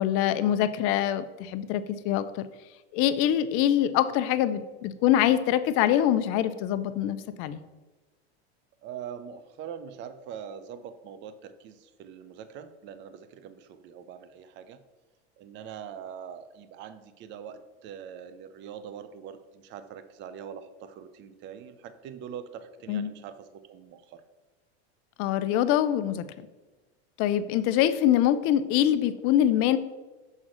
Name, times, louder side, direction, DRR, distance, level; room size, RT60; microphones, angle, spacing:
voice 1, 0.0-2.4 2.9-7.6 22.9-23.1 25.2-26.2 27.2-29.8, left 11 dB, 40° left, 12 dB, 0.5 m, -24 dB
voice 2, 8.8-14.8 15.4-24.2, right 8 dB, 35° right, 11 dB, 0.5 m, -43 dB
6.4 x 3.6 x 6.2 m, 1.2 s
supercardioid pair, 135°, 33 cm